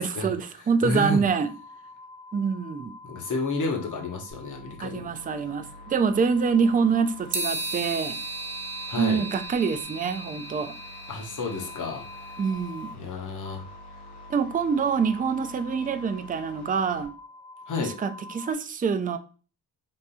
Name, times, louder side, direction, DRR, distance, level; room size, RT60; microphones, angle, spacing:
voice 1, 0.0-1.5 2.3-3.0 4.8-8.2 9.0-10.7 12.4-12.9 14.3-17.1 18.0-19.2, right 5 dB, 20° right, 0.4 m, -25 dB
voice 2, 0.6-1.2 3.0-5.2 8.9-9.2 11.1-12.4 12.9-13.7 17.7-17.9, left 3 dB, 50° left, 1.1 m, -31 dB
sound 1, 1.2-18.5, left 2 dB, 25° left, 0.8 m, -47 dB
sound 2, 4.3-17.0, left 1 dB, 80° left, 1.6 m, -48 dB
sound 3, 7.3-12.6, right 2 dB, 40° right, 0.9 m, -35 dB
3.6 x 2.6 x 4.1 m
cardioid pair, 105°, 39 cm